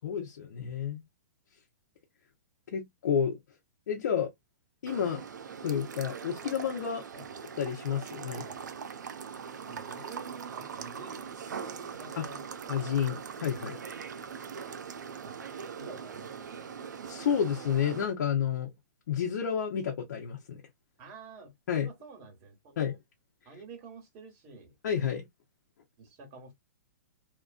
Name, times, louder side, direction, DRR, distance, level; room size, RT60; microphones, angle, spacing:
voice 1, 0.0-1.0 2.7-3.4 3.9-4.3 4.8-5.2 5.6-7.0 7.6-8.4 12.2-12.3 12.7-13.8 17.1-18.7 19.1-20.6 21.7-21.9 22.8-23.0 24.8-25.3, left 8 dB, 65° left, 0.9 m, -30 dB
sound 1, 4.9-18.0, right 6 dB, 85° right, 0.6 m, -41 dB
voice 2, 8.2-8.8 9.7-12.5 15.2-15.4 15.8-16.3 21.0-21.5 21.8-23.0 23.4-24.7 26.0-26.5, right 4 dB, 30° right, 1.6 m, -48 dB
3.0 x 2.4 x 2.4 m
hypercardioid pair, 145°, 10 cm